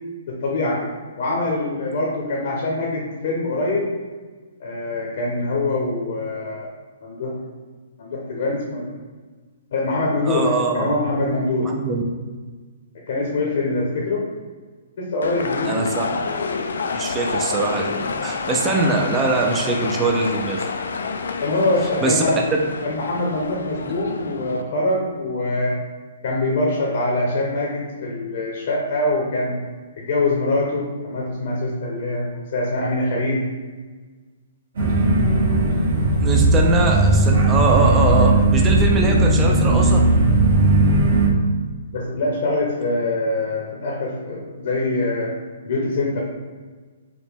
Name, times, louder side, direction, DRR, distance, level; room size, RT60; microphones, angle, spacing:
voice 1, 0.3-0.9 1.2-3.9 4.6-6.7 7.0-7.4 8.0-8.9 9.7-11.7 13.1-14.3 15.0-15.8 21.4-22.5 22.8-25.7 26.2-29.6 30.0-33.4 41.9-45.3 45.7-46.2, left 2 dB, 50° left, -2 dB, 0.7 m, -24 dB
voice 2, 10.3-10.9 11.6-12.0 15.7-16.0 16.9-20.7 22.0-22.2 22.5-22.6 36.2-40.0, right 3 dB, 15° right, 0 dB, 0.3 m, -22 dB
sound 1, 15.2-24.6, left 4 dB, 90° left, 0.3 m, -28 dB
sound 2, 34.7-41.3, right 2 dB, 60° right, 1.2 m, -17 dB
4.8 x 2.1 x 3.4 m, 1.4 s
hypercardioid pair, 170°, 0 cm